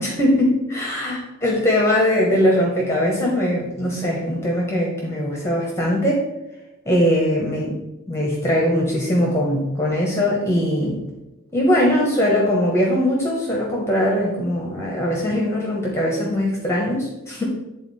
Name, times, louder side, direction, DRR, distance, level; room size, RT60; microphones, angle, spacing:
voice 1, 0.0-6.2 6.8-7.8 8.1-11.0 11.5-17.4, equal, 10° left, -2 dB, 1.0 m, -21 dB
8.2 x 4.0 x 4.1 m, 0.98 s
head